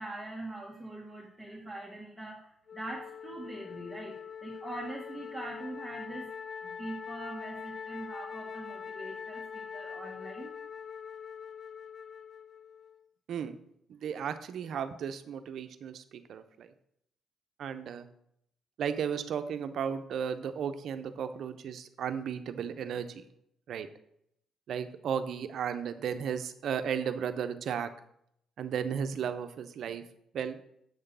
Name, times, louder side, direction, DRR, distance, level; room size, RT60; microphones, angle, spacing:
voice 1, 0.0-6.4 6.6-10.6, right 1 dB, 5° right, -4 dB, 1.6 m, -42 dB
Wind instrument woodwind instrument, 2.7-13.0, left 7 dB, 45° left, 0.4 m, -43 dB
voice 2, 13.9-16.7 17.6-18.1 18.8-23.2 23.7-23.9 24.7-27.9 28.6-30.0 30.3-30.6, right 7 dB, 70° right, 10 dB, 0.7 m, -34 dB
7.9 x 3.7 x 6.8 m, 0.73 s
cardioid pair, 90°, 0 cm